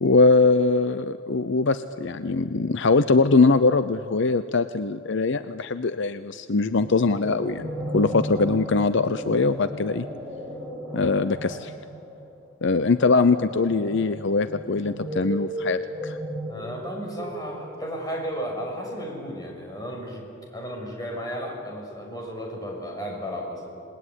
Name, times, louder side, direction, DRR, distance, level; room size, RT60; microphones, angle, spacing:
voice 1, 0.0-10.1 10.9-11.7 12.6-16.2, left 3 dB, 65° left, 12 dB, 0.7 m, -22 dB
sound 1, 6.8-18.1, right 1 dB, 15° right, 7.7 m, -35 dB
voice 2, 16.5-20.3 20.5-23.8, equal, 20° left, 0 dB, 6.4 m, -34 dB
27.5 x 20.0 x 9.9 m, 2.5 s
head